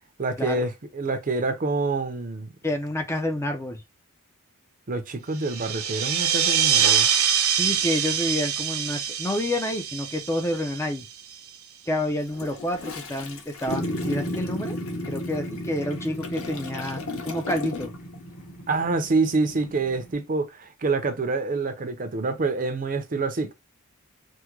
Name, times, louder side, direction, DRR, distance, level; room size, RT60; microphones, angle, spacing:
voice 1, 0.2-2.5 4.9-7.1 18.7-23.5, right 3 dB, 40° right, 0.6 m, -26 dB
voice 2, 2.6-3.8 7.6-11.1 11.9-14.8 15.0-17.9, left 1 dB, 15° left, 0.4 m, -29 dB
sound 1, 5.4-11.5, right 8 dB, 85° right, 0.9 m, -24 dB
Toilet flush, 12.2-18.2 18.4-18.7, left 4 dB, 65° left, 0.8 m, -39 dB
sound 2, 13.7-20.1, equal, 40° left, 0.9 m, -34 dB
3.5 x 2.1 x 3.0 m
head